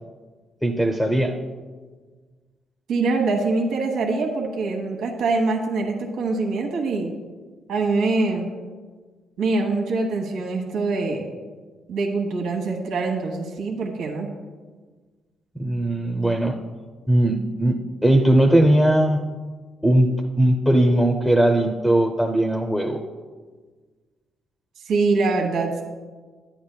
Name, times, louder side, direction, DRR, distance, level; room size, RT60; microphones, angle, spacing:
voice 1, 0.6-1.4 15.5-16.5 17.1-17.8 18.0-19.3 19.8-23.0, right 1 dB, 5° left, 3 dB, 0.7 m, -19 dB
voice 2, 2.9-7.1 7.7-8.5 9.4-11.3 11.9-14.3 24.9-25.8, right 3 dB, 85° right, 1 dB, 1.1 m, -24 dB
10.0 x 9.3 x 2.2 m, 1.4 s
cardioid pair, 90°, 0 cm